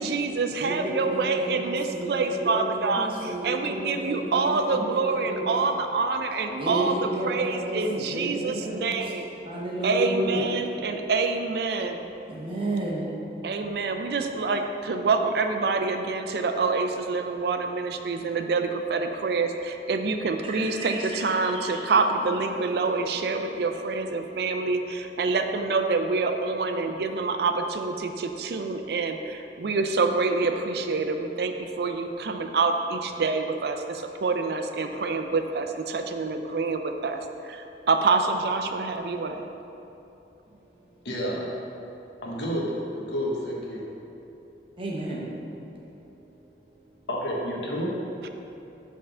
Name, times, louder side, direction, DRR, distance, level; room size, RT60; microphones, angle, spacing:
voice 1, 0.0-9.3 9.8-12.1 13.4-39.5 48.2-48.3, right 4 dB, 65° right, 6 dB, 0.4 m, -26 dB
voice 2, 0.6-5.4 6.5-9.1 9.4-10.5 12.3-13.4 20.4-21.8 23.4-23.6 40.5-40.6 40.9-41.0 44.8-45.3, right 1 dB, 30° right, -4 dB, 0.9 m, -32 dB
voice 3, 41.0-41.4 42.2-42.6 43.0-43.9 47.1-47.9, equal, 85° left, -3 dB, 1.1 m, -30 dB
5.5 x 3.7 x 5.4 m, 2.9 s
head